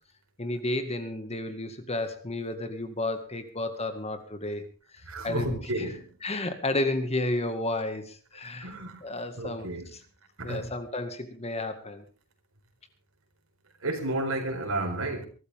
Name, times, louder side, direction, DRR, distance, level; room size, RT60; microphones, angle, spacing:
voice 1, 0.4-4.7 4.9-5.9 6.2-8.7 9.0-9.7 10.4-12.1, left 2 dB, 30° left, 2.0 m, -32 dB
voice 2, 5.1-6.2 8.6-9.1 9.3-9.9 10.4-10.7 13.8-15.3, right 2 dB, 75° right, 4.5 m, -32 dB
23.0 x 14.0 x 3.7 m
head